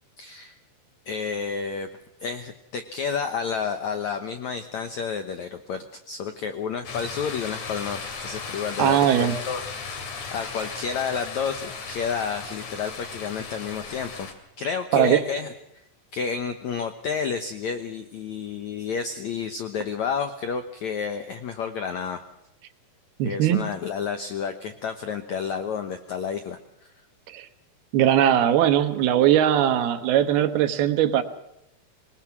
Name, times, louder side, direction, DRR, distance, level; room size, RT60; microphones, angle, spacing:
voice 1, 0.2-0.6 1.1-1.9 2.2-10.0 10.3-14.3 14.6-15.5 16.1-22.2 23.2-26.9, left 6 dB, 75° left, 8 dB, 1.7 m, -30 dB
sound 1, 6.8-14.3, left 5 dB, 45° left, 3.4 m, -36 dB
voice 2, 8.8-9.4 14.9-15.2 23.2-23.7 27.3-27.5 27.9-31.2, right 10 dB, 70° right, 9 dB, 3.0 m, -20 dB
26.5 x 20.0 x 6.1 m, 0.82 s
omnidirectional pair, 4.8 m